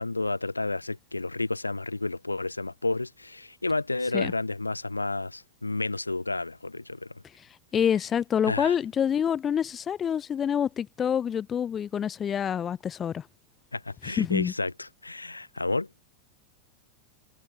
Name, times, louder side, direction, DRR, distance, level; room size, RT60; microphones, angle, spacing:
voice 1, 0.0-7.1 8.4-8.7 13.7-15.9, left 2 dB, 80° left, 4.1 m, -31 dB
voice 2, 7.7-13.2 14.2-14.5, left 8 dB, 25° left, 4.4 m, -27 dB
figure-of-eight pair, 90°, 0 cm